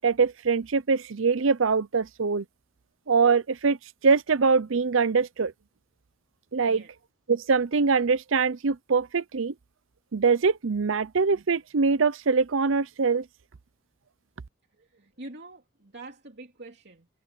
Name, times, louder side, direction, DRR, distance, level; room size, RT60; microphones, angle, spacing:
voice 1, 0.0-2.4 3.1-3.8 4.0-5.5 6.5-6.8 7.3-9.5 10.1-13.3, right 5 dB, 70° right, 0.6 m, -23 dB
voice 2, 14.7-17.1, right 2 dB, 55° right, 3.1 m, -45 dB
head